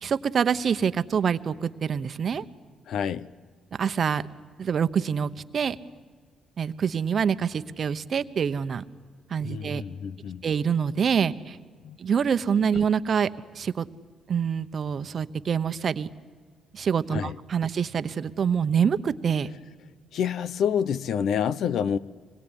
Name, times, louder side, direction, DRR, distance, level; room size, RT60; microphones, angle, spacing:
voice 1, 0.0-2.4 3.8-4.2 4.6-5.8 6.6-8.8 9.3-9.8 10.4-11.6 12.0-13.3 13.5-13.8 14.3-16.1 16.7-19.5, right 7 dB, 50° right, 12 dB, 1.0 m, -26 dB
voice 2, 2.9-3.3 9.4-10.4 11.8-12.0 17.1-17.4 20.1-22.0, left 8 dB, 70° left, 17 dB, 0.8 m, -28 dB
25.0 x 21.0 x 9.9 m, 1.6 s
cardioid pair, 90°, 0 cm